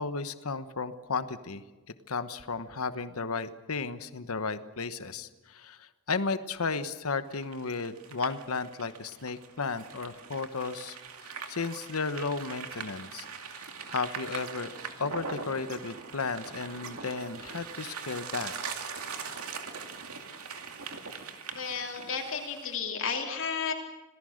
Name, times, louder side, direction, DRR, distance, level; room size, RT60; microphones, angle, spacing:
voice 1, 0.0-1.6 2.1-13.3 13.5-13.6 13.9-14.7 15.0-18.5, left 4 dB, 85° left, 12 dB, 1.1 m, -34 dB
sound 1, 7.3-22.8, right 5 dB, 90° right, 2.4 m, -41 dB
voice 2, 21.5-23.7, left 6 dB, 60° left, 1 dB, 3.0 m, -32 dB
27.0 x 18.5 x 6.5 m, 1.1 s
head